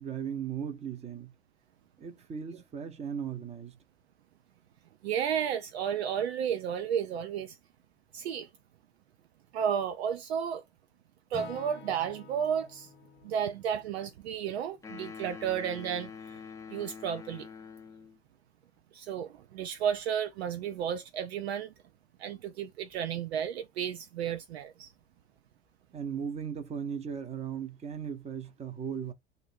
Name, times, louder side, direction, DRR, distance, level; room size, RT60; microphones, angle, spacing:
voice 1, 0.0-1.3 2.0-3.8 25.9-29.1, right 7 dB, 20° right, 0.8 m, -37 dB
voice 2, 5.0-7.6 8.1-8.5 9.5-10.6 11.3-12.9 13.2-16.4 16.7-17.5 18.9-21.7 22.2-24.9, right 8 dB, 70° right, 0.5 m, -32 dB
Acoustic guitar / Strum, 11.3-15.4, left 6 dB, 35° left, 0.9 m, -51 dB
sound 1, 14.8-18.2, left 6 dB, 10° left, 0.6 m, -45 dB
2.7 x 2.6 x 4.2 m
figure-of-eight pair, 80°, 33 cm